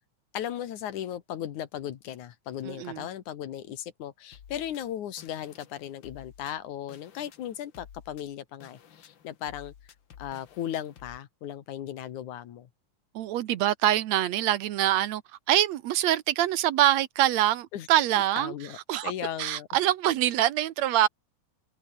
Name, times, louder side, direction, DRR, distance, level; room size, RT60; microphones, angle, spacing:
voice 1, 0.3-9.7 10.2-12.7 17.7-17.9 18.4-18.8 19.0-19.7, left 11 dB, 85° left, 3.0 m, -36 dB
voice 2, 2.7-3.1 13.2-15.2 15.5-18.5 18.9-19.1 19.4-21.1, right 13 dB, 70° right, 2.1 m, -24 dB
sound 1, 4.3-11.2, left 8 dB, 50° left, 1.9 m, -53 dB
omnidirectional pair, 3.3 m